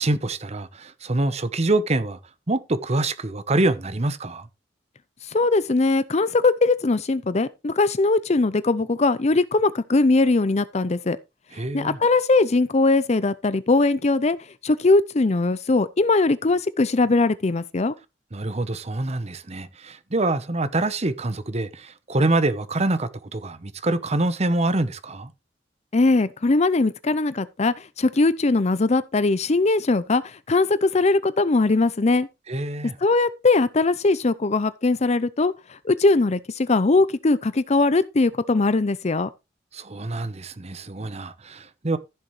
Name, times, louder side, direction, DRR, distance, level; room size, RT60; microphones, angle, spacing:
voice 1, 0.0-2.2 2.5-4.5 11.5-12.0 18.3-25.3 32.5-32.9 39.7-42.0, right 2 dB, 35° right, 1.0 m, -25 dB
voice 2, 5.3-11.2 11.7-14.4 14.6-17.9 25.9-32.3 33.0-35.5 35.8-39.3, left 3 dB, 40° left, 0.6 m, -20 dB
15.0 x 6.9 x 3.2 m
head